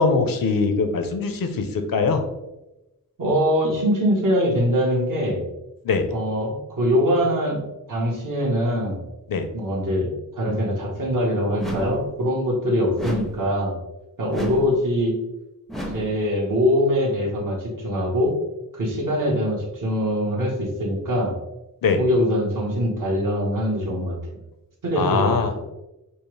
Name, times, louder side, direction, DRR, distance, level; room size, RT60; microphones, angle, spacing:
voice 1, 0.0-2.2 5.8-6.0 9.3-9.5 21.8-22.0 25.0-25.5, left 4 dB, 70° left, 6 dB, 0.6 m, -22 dB
voice 2, 3.2-5.4 6.1-7.6 7.9-9.0 9.5-13.8 14.2-15.1 15.9-18.3 18.7-21.3 22.0-24.2 24.8-25.4, equal, 60° right, -3 dB, 1.3 m, -23 dB
sound 1, 11.6-12.1 13.0-13.5 14.3-14.8 15.7-16.2, right 1 dB, ahead, 0.5 m, -31 dB
5.3 x 2.0 x 3.2 m, 0.96 s
wide cardioid pair, 110°, 35 cm